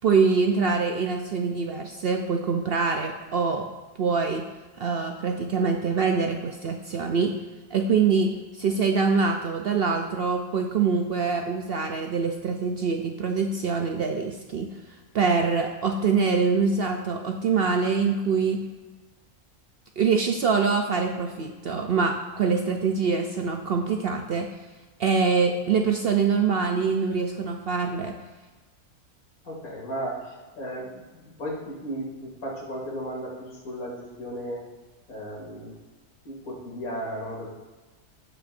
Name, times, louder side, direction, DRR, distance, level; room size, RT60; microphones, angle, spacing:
voice 1, 0.0-3.7 4.0-4.5 4.8-7.3 7.7-14.7 15.1-18.6 20.0-24.5 25.0-28.1, right 5 dB, 60° right, 4 dB, 0.6 m, -24 dB
voice 2, 29.4-34.6 35.1-35.7 36.2-37.5, equal, 85° left, -4 dB, 2.8 m, -35 dB
16.5 x 5.5 x 2.5 m, 1.2 s
omnidirectional pair, 1.5 m